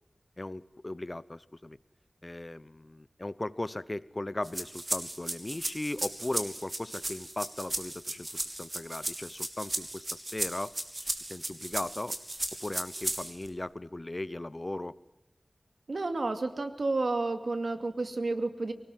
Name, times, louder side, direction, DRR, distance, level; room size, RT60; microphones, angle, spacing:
voice 1, 0.4-1.8 2.2-10.7 11.2-12.2 12.6-15.0, left 1 dB, 35° left, 18 dB, 0.9 m, -37 dB
sound 1, 4.4-13.5, right 1 dB, 35° right, 3.8 m, -35 dB
voice 2, 15.9-18.7, right 3 dB, 75° right, 8 dB, 2.4 m, -31 dB
23.5 x 20.0 x 7.7 m, 0.93 s
wide cardioid pair, 55°, 0 cm